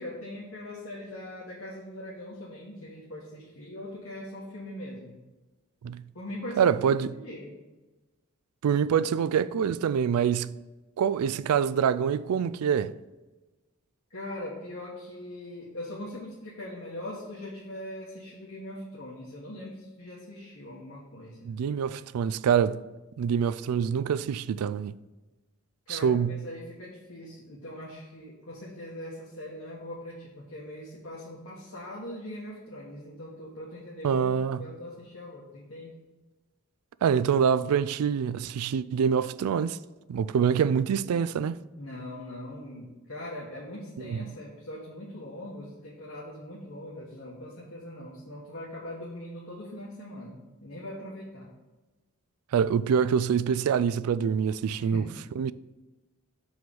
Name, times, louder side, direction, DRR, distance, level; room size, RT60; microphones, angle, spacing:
voice 1, 0.0-5.2 6.1-7.5 14.1-21.5 25.9-34.2 34.6-35.9 41.8-51.5 54.7-55.2, left 1 dB, 65° left, 1.5 m, -41 dB
voice 2, 6.6-7.1 8.6-10.6 11.0-12.9 21.4-22.8 23.2-24.9 25.9-26.4 34.0-34.7 37.0-39.8 40.1-41.6 44.0-44.2 52.5-55.0 55.4-55.5, right 7 dB, 85° right, 0.3 m, -25 dB
6.2 x 4.8 x 5.3 m
head